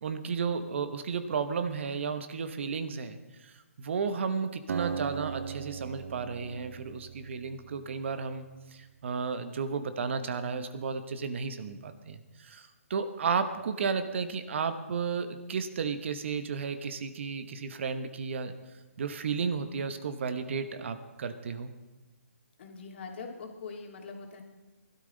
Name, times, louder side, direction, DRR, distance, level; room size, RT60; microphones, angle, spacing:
voice 1, 0.0-3.2 3.4-3.5 3.8-8.5 8.7-18.5 19.0-21.7, right 5 dB, 50° right, 10 dB, 1.2 m, -33 dB
Acoustic guitar, 4.7-8.3, right 6 dB, 70° right, 0.4 m, -38 dB
voice 2, 22.6-24.4, left 4 dB, 45° left, 1 dB, 3.0 m, -42 dB
20.0 x 12.5 x 4.0 m, 1.1 s
hypercardioid pair, 150°, 8 cm